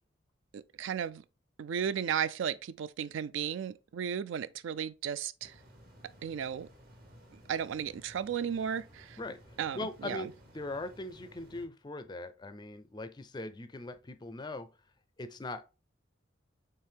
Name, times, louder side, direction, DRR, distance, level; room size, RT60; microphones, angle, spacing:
voice 1, 0.5-1.2 1.6-5.5 6.2-6.7 7.5-9.2 9.6-10.3, right 8 dB, 70° right, 0.3 m, -34 dB
sound 1, 5.4-11.7, equal, 45° right, 1.1 m, -56 dB
voice 2, 9.2-14.7 15.2-15.6, left 2 dB, 20° left, 0.4 m, -41 dB
4.6 x 3.2 x 3.4 m
head